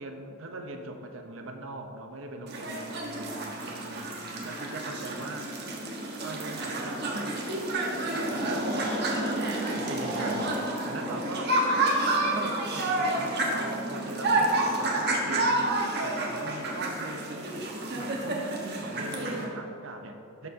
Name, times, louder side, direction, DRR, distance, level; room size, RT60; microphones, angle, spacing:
voice 1, 0.0-4.1 4.4-5.5 6.2-7.4 8.0-8.9 9.7-10.5 10.8-11.6 12.3-15.6 16.0-20.5, right 2 dB, 75° right, 5 dB, 0.8 m, -40 dB
sound 1, 2.5-19.4, right 2 dB, 55° right, 1.3 m, -29 dB
12.0 x 6.8 x 2.8 m, 2.6 s
head